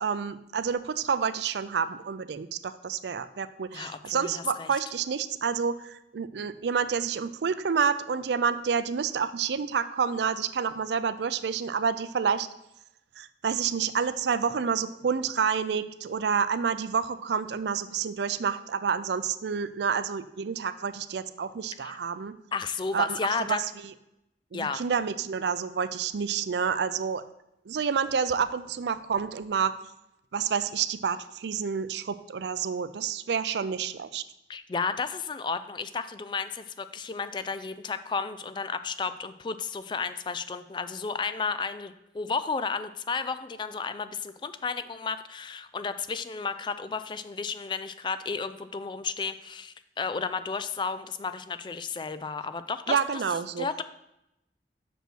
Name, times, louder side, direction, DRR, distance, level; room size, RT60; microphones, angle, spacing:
voice 1, 0.0-12.5 13.2-22.4 22.9-23.2 23.5-23.6 24.5-27.2 27.7-29.8 30.3-34.2 52.9-53.7, right 6 dB, 75° right, 14 dB, 0.4 m, -29 dB
voice 2, 3.7-4.7 21.8-22.0 22.5-23.6 24.5-24.8 34.5-53.0 53.6-53.8, left 5 dB, 25° left, 12 dB, 0.3 m, -33 dB
6.2 x 5.4 x 6.1 m, 0.86 s
head